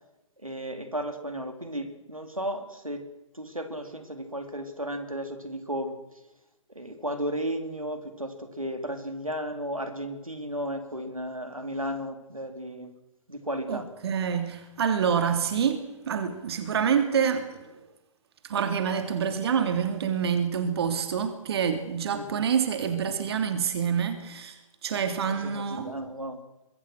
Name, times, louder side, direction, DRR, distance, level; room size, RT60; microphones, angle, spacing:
voice 1, 0.4-3.0 3.3-6.0 6.7-12.9 13.3-13.9 22.1-22.5 24.9-26.4, equal, 90° right, 4.1 m, -34 dB
voice 2, 13.7-17.7 18.4-25.9, right 7 dB, 50° right, 2.9 m, -27 dB
26.5 x 22.5 x 6.4 m
figure-of-eight pair, 125°, 17 cm